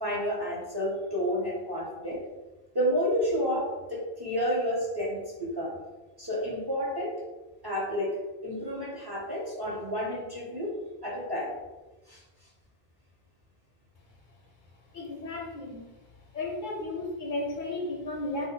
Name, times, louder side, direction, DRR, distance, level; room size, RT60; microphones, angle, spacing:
voice 1, 0.0-2.2 2.7-5.8 6.2-7.2 7.6-8.2 8.4-10.7 11.0-11.5 12.1-12.2, equal, 30° right, -5 dB, 0.6 m, -30 dB
voice 2, 14.9-15.8 16.3-18.5, left 2 dB, 60° left, -1 dB, 0.6 m, -34 dB
2.8 x 2.1 x 3.8 m, 1.2 s
omnidirectional pair, 1.0 m